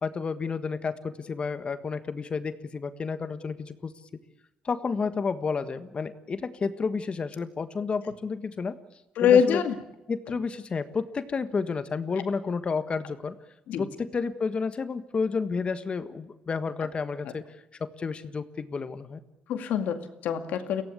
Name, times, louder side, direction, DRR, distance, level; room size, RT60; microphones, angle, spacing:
voice 1, 0.0-3.9 4.6-8.7 9.2-9.6 10.1-13.3 13.8-17.4 17.8-19.2, left 5 dB, 40° left, 11 dB, 1.5 m, -31 dB
voice 2, 9.2-9.8 13.7-13.8 17.2-17.3 19.5-20.8, left 8 dB, 80° left, 8 dB, 2.1 m, -24 dB
23.0 x 16.5 x 8.4 m, 0.95 s
cardioid pair, 80°, 3 cm